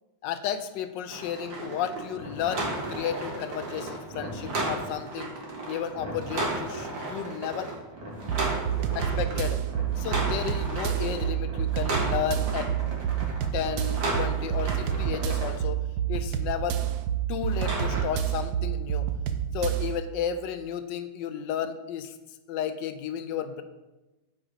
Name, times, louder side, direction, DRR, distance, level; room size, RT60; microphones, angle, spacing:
voice 1, 0.2-5.3 5.7-7.7 8.9-9.6 9.9-12.7 13.5-15.8 16.1-16.8 17.3-19.1 19.5-22.1 22.5-23.6, left 8 dB, 80° left, 10 dB, 1.2 m, -33 dB
sound 1, 1.1-15.5 17.4-18.0, right 2 dB, 90° right, 2.1 m, -34 dB
sound 2, 8.3-20.0, right 10 dB, 70° right, 1.0 m, -29 dB
8.0 x 4.1 x 5.0 m, 1.1 s
omnidirectional pair, 2.0 m